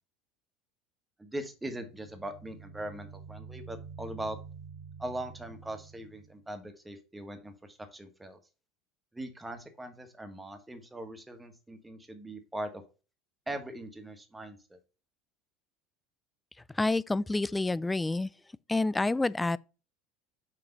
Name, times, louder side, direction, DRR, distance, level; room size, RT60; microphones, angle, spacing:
voice 1, 1.2-4.4 5.0-8.4 9.1-12.8 13.5-14.8, right 1 dB, 10° right, 1.6 m, -40 dB
sound 1, 1.7-6.4, right 5 dB, 55° left, 2.3 m, -48 dB
voice 2, 16.7-18.3 18.7-19.6, left 2 dB, 10° left, 0.3 m, -28 dB
6.0 x 4.9 x 5.4 m
hypercardioid pair, 75°, 0 cm